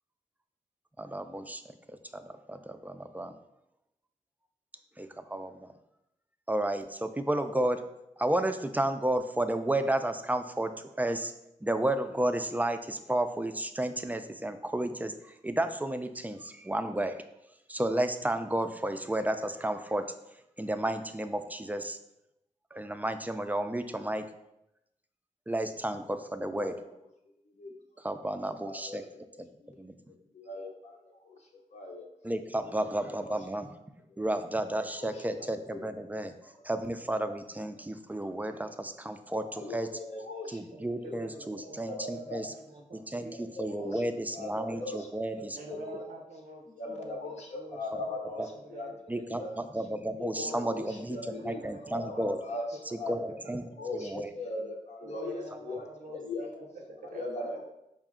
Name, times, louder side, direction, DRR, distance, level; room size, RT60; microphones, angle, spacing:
voice 1, 1.0-1.6 2.1-3.3 5.0-5.7 6.5-7.8 8.2-10.7 11.0-11.3 11.6-15.1 15.4-17.2 17.7-20.1 20.6-22.0 22.7-24.2 25.5-26.7 28.0-29.0 29.4-29.5 29.8-29.9 32.2-33.7 34.2-36.3 36.6-39.9 40.5-42.5 43.1-43.3 43.6-45.6 48.4-48.5 49.1-51.2 51.5-52.4 53.1-53.6 54.0-54.3, right 1 dB, 10° right, 8 dB, 0.3 m, -32 dB
voice 2, 26.5-26.9 27.6-27.7 28.4-29.4 30.3-30.9 31.2-31.4 31.7-32.1 32.6-33.4 35.0-35.8 36.7-36.8 38.1-38.3 39.6-40.6 41.0-41.1 41.6-42.5 43.3-44.0 44.3-46.0 46.8-49.7 50.2-53.4 53.8-56.5 57.0-57.6, left 2 dB, 55° left, -1 dB, 0.6 m, -40 dB
voice 3, 40.7-44.9 45.5-49.0 49.3-49.4 50.4-52.3 52.7-53.9 55.0-57.6, right 1 dB, 90° right, 1 dB, 0.6 m, -47 dB
4.6 x 2.1 x 3.6 m, 0.85 s
cardioid pair, 50°, 14 cm